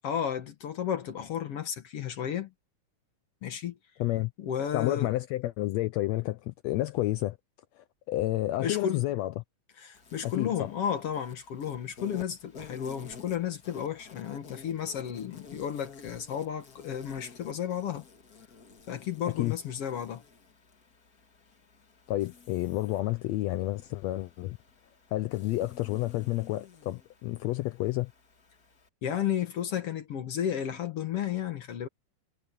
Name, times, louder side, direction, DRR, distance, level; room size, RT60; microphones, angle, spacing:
voice 1, 0.0-2.5 3.4-3.8 4.4-5.1 8.6-9.0 9.8-18.1 18.9-20.2 29.0-31.9, left 9 dB, 55° left, 1.9 m, -33 dB
voice 2, 4.0-4.3 4.7-7.4 7.8-9.3 10.2-10.7 19.4-19.6 22.1-24.6 25.1-28.1, left 16 dB, 85° left, 1.5 m, -30 dB
Insect, 9.9-28.9, left 5 dB, 35° left, 1.8 m, -52 dB
omnidirectional pair, 3.6 m